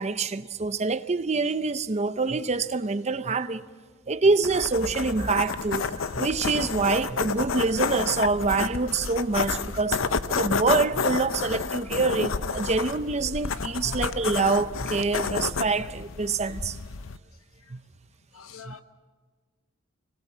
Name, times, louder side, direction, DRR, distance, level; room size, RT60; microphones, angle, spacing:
voice 1, 0.0-3.6 4.1-16.8 17.7-17.8 18.6-18.8, right 4 dB, 30° right, 0.6 m, -26 dB
sound 1, 4.4-17.2, left 5 dB, 65° left, 0.7 m, -30 dB
voice 2, 13.5-14.2 15.1-15.2 15.8-15.9 18.3-18.8, left 6 dB, 90° left, 1.1 m, -45 dB
25.5 x 19.0 x 7.4 m
head